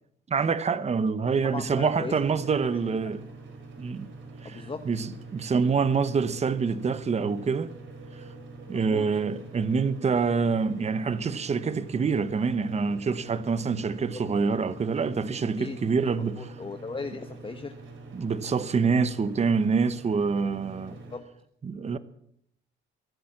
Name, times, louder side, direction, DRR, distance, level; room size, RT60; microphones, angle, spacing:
voice 1, 0.3-3.2 3.8-4.1 4.4-7.7 8.7-16.5 18.1-21.0 21.6-22.0, right 5 dB, 35° right, 1.0 m, -26 dB
voice 2, 1.4-2.1 4.4-4.8 8.7-9.1 14.1-14.2 15.6-15.8 16.2-17.7 21.1-21.2, left 4 dB, 25° left, 1.3 m, -37 dB
sound 1, 1.4-21.2, right 3 dB, 75° right, 4.5 m, -45 dB
22.5 x 8.6 x 7.2 m
cardioid pair, 90°, 20 cm